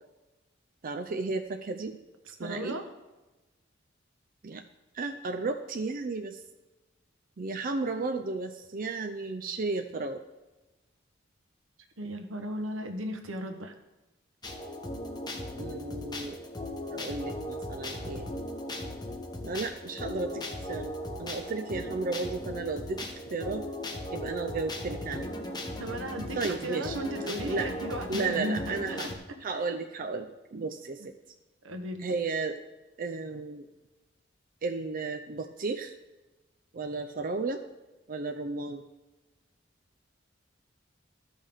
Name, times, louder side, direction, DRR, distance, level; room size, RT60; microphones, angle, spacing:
voice 1, 0.8-2.0 2.3-2.8 4.4-4.6 4.9-6.4 7.4-10.2 15.6-16.4 16.9-18.3 19.4-20.9 21.2-23.6 24.1-25.3 26.3-27.0 27.5-27.7 28.1-29.1 29.4-31.1 32.0-32.6 33.0-33.7 34.6-35.9 36.7-37.6 38.1-38.8, right 3 dB, 45° right, 6 dB, 0.5 m, -33 dB
voice 2, 2.4-2.8 12.0-13.7 25.8-29.1 29.5-29.8 31.6-32.1, equal, 85° right, 6 dB, 1.1 m, -36 dB
sound 1, 14.4-29.2, left 1 dB, 20° left, 1.0 m, -37 dB
14.5 x 5.5 x 3.5 m, 1.1 s
head